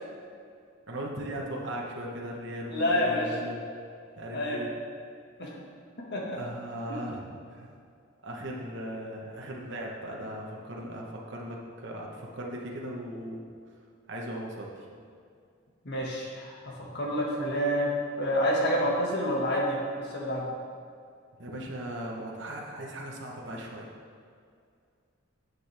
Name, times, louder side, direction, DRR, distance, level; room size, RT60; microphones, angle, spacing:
voice 1, 0.9-3.6 4.2-4.7 6.3-7.7 8.2-13.4 14.1-14.7 21.4-23.9, right 1 dB, 60° right, -2 dB, 1.1 m, -38 dB
voice 2, 2.7-3.3 4.3-4.6 5.4-5.5 6.1-6.4 6.9-7.0 15.9-16.5 16.9-20.5, equal, 55° left, -3 dB, 1.7 m, -28 dB
9.3 x 7.8 x 3.5 m, 2.3 s
head